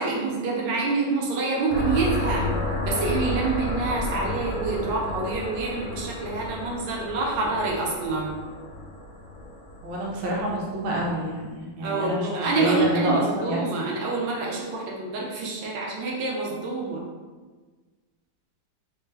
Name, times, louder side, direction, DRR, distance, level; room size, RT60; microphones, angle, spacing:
voice 1, 0.0-2.5 2.8-8.4 11.8-17.0, right 3 dB, 90° right, -3 dB, 1.3 m, -27 dB
sound 1, 1.7-11.3, left 1 dB, 60° left, 0.6 m, -32 dB
voice 2, 9.8-12.3 12.6-13.6, equal, 70° right, -4 dB, 1.3 m, -27 dB
3.2 x 2.2 x 3.2 m, 1.3 s
omnidirectional pair, 1.9 m